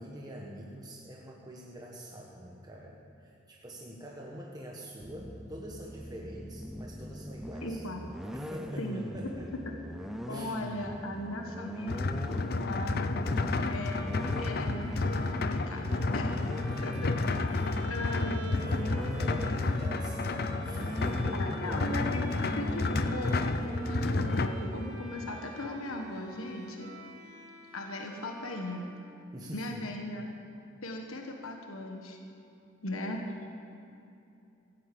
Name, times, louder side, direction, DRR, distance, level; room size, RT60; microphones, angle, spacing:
voice 1, 0.0-7.8 8.2-9.6 10.3-10.6 16.7-17.9 18.3-21.9 29.3-29.8, equal, 20° right, -2 dB, 1.2 m, -45 dB
sound 1, 5.0-24.9, equal, ahead, 0.5 m, -40 dB
voice 2, 7.6-8.1 8.8-9.0 9.6-9.7 10.3-13.2 13.7-14.0 14.4-16.3 16.8-17.1 17.9-18.7 21.3-26.9 27.7-28.9 29.5-30.3 30.8-32.2 32.8-33.5, left 1 dB, 85° left, 2 dB, 1.4 m, -38 dB
sound 2, 11.9-24.5, left 3 dB, 50° left, 0.6 m, -31 dB
Bowed string instrument, 13.5-29.5, right 2 dB, 75° right, 2.3 m, -47 dB
16.0 x 8.4 x 8.5 m, 2.7 s
head